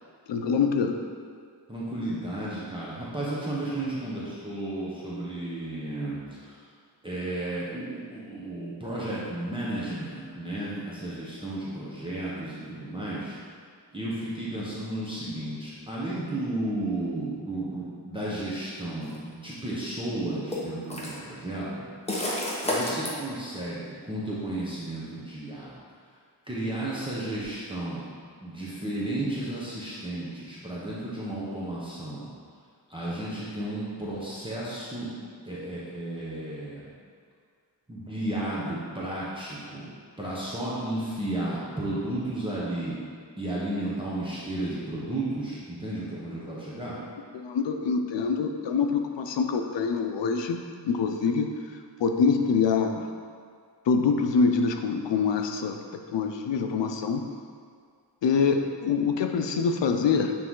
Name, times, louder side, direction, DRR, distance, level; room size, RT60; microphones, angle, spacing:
voice 1, 0.3-1.0 47.3-51.5 52.0-53.0 53.9-57.3 58.2-60.3, left 5 dB, 90° left, 5 dB, 0.6 m, -25 dB
voice 2, 1.7-6.6 7.0-13.4 13.9-21.7 22.6-25.7 26.5-28.1 28.4-32.3 32.9-35.1 35.4-36.8 37.9-39.9 40.2-43.0 43.4-46.9, right 1 dB, 10° right, -8 dB, 1.2 m, -33 dB
sound 1, 19.0-19.2 20.5-21.2 22.1-23.1, left 1 dB, 15° left, 1.1 m, -29 dB
8.7 x 3.4 x 3.8 m, 2.1 s
wide cardioid pair, 105°, 42 cm